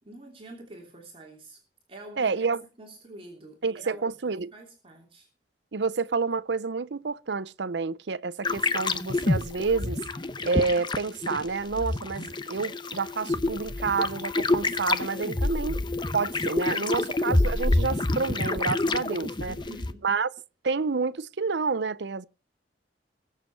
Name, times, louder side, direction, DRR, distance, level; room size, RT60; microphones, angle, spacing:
voice 1, 0.0-1.6 1.9-2.5 2.8-4.0 4.5-5.3 16.7-17.1 19.5-20.0, right 2 dB, 30° right, 3.0 m, -45 dB
voice 2, 2.2-2.6 3.6-4.5 5.7-10.0 10.4-15.8 16.1-19.5 20.0-20.3 20.6-22.3, right 4 dB, 70° right, 0.7 m, -29 dB
sound 1, 8.4-19.9, left 2 dB, 25° left, 0.8 m, -28 dB
21.5 x 7.4 x 4.6 m
head